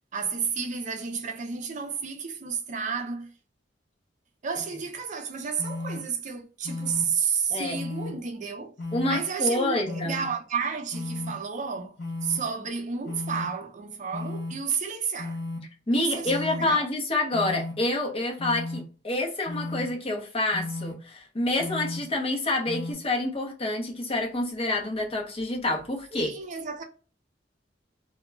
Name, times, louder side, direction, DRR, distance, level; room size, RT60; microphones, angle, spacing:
voice 1, 0.1-3.3 4.4-8.7 9.1-12.0 12.2-15.4 15.9-16.9 26.1-26.8, right 6 dB, 40° right, 0.5 m, -31 dB
sound 1, 5.6-6.0 6.6-7.1 7.7-8.1 8.8-9.2 9.8-10.3 10.9-11.3 12.0-12.4 13.0-13.5 14.1-14.5 15.2-15.6 16.3-16.7 17.3-17.7 18.4-18.8 19.5-19.9 20.5-20.9 21.6-22.0 22.7-22.9, left 2 dB, 70° left, 0.7 m, -34 dB
voice 2, 8.9-10.2 15.9-26.3, left 2 dB, 30° left, 0.7 m, -28 dB
2.2 x 2.0 x 3.4 m
head